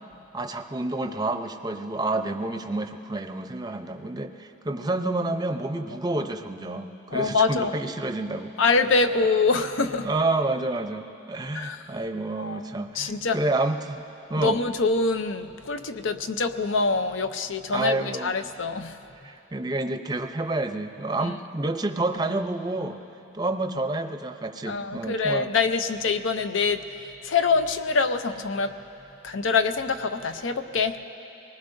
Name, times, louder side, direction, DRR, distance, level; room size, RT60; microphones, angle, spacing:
voice 1, 0.3-8.5 10.0-14.0 14.3-14.6 17.7-18.3 19.2-23.0 23.3-25.5, right 2 dB, 20° right, 6 dB, 0.6 m, -29 dB
voice 2, 7.1-7.7 8.6-10.1 11.5-12.0 12.4-13.4 14.4-19.0 21.2-21.4 24.7-28.7 29.2-31.0, left 4 dB, 75° left, 9 dB, 0.6 m, -25 dB
24.5 x 19.5 x 2.6 m, 3.0 s
head